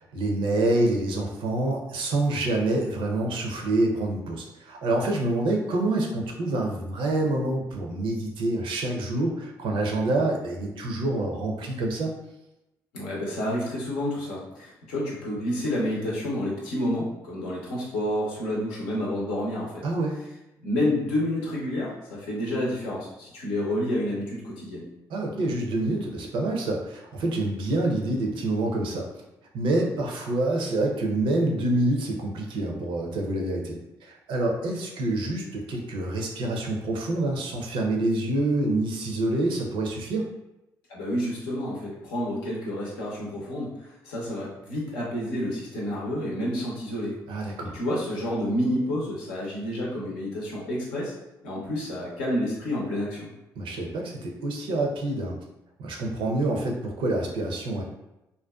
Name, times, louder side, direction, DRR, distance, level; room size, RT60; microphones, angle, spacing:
voice 1, 0.1-12.1 19.8-20.1 25.1-29.1 29.5-40.3 47.3-47.7 53.6-55.4 55.8-57.8, right 2 dB, 70° right, 1 dB, 0.5 m, -27 dB
voice 2, 12.9-19.8 20.6-24.9 40.9-47.2 47.7-51.1 51.4-53.3, left 1 dB, 85° left, -4 dB, 0.6 m, -29 dB
2.5 x 2.2 x 2.3 m, 0.95 s
hypercardioid pair, 50°, 9 cm